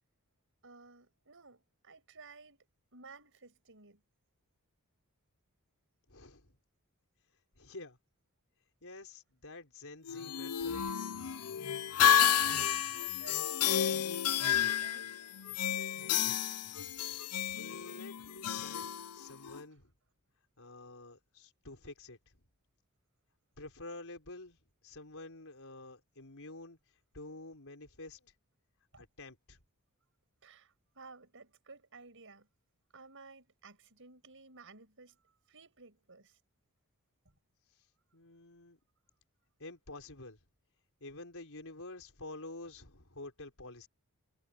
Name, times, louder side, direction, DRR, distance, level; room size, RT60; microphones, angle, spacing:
voice 1, 0.6-2.7 2.9-4.0 12.3-14.0 14.3-15.1 28.9-29.1 30.4-32.5 32.9-35.2 35.5-36.4, right 4 dB, 60° right, 7.1 m, -54 dB
voice 2, 6.1-6.6 7.6-8.0 8.8-11.0 16.5-16.8 17.6-19.9 20.6-22.2 23.6-24.6 24.8-26.8 27.1-28.3 29.0-29.6 38.1-38.8 39.6-40.4 41.0-43.9, left 2 dB, 65° left, 5.3 m, -49 dB
sound 1, 10.1-19.6, left 9 dB, 90° left, 0.7 m, -31 dB
head